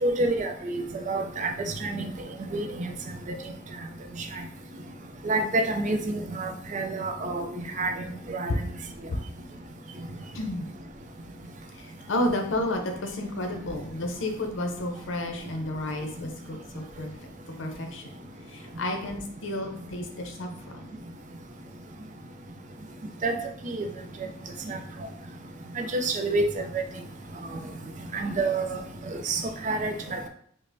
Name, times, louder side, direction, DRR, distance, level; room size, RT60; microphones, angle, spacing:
voice 1, 0.0-2.1 2.5-2.9 5.2-7.5 7.8-7.9 8.3-8.5 23.2-23.4 23.7-23.9 24.7-24.8 25.8-26.4 26.7-26.8 28.1-28.7 29.3-30.3, right 2 dB, 40° right, 4 dB, 0.4 m, -28 dB
voice 2, 10.3-10.7 11.7-17.1 17.6-18.0 18.5-21.0, left 1 dB, 70° left, 4 dB, 0.6 m, -31 dB
5.1 x 2.1 x 2.6 m, 0.65 s
head